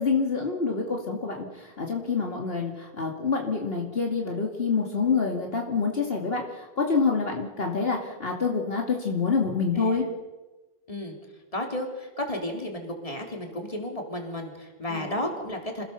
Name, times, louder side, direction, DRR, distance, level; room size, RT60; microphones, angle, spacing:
voice 1, 0.0-10.0 14.9-15.1, left 5 dB, 65° left, 1 dB, 2.6 m, -27 dB
voice 2, 11.5-15.8, left 1 dB, 35° left, 2 dB, 3.6 m, -33 dB
27.0 x 17.0 x 7.0 m, 1.2 s
omnidirectional pair, 1.1 m